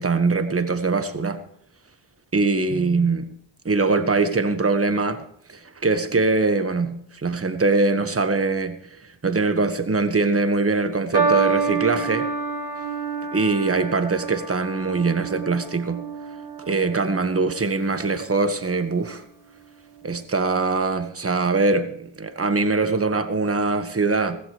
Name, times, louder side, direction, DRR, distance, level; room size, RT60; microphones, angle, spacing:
voice 1, 0.0-1.4 2.3-3.3 3.6-5.2 5.5-8.8 9.2-12.3 13.3-16.0 16.7-19.2 20.0-24.4, right 3 dB, 30° right, 1.6 m, -22 dB
sound 1, 11.1-17.7 18.5-18.9, right 5 dB, 55° right, 3.9 m, -28 dB
16.5 x 15.0 x 3.2 m
cardioid pair, 70°, 48 cm